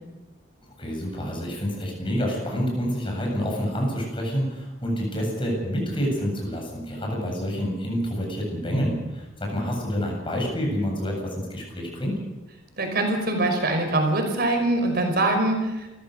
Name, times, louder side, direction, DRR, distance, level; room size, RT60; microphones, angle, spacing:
voice 1, 0.8-12.2, equal, 25° left, 0 dB, 7.9 m, -28 dB
voice 2, 12.8-15.9, right 2 dB, 50° right, 4 dB, 5.4 m, -23 dB
28.5 x 15.0 x 6.7 m, 1.1 s
head